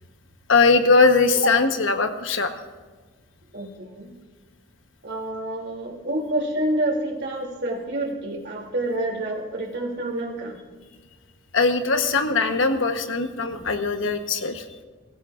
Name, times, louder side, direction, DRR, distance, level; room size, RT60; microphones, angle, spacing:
voice 1, 0.5-2.5 11.5-14.6, left 4 dB, 65° left, 7 dB, 1.1 m, -20 dB
voice 2, 3.5-4.1 5.0-10.6, right 1 dB, 55° right, -1 dB, 2.9 m, -28 dB
23.0 x 15.5 x 2.5 m, 1.4 s
head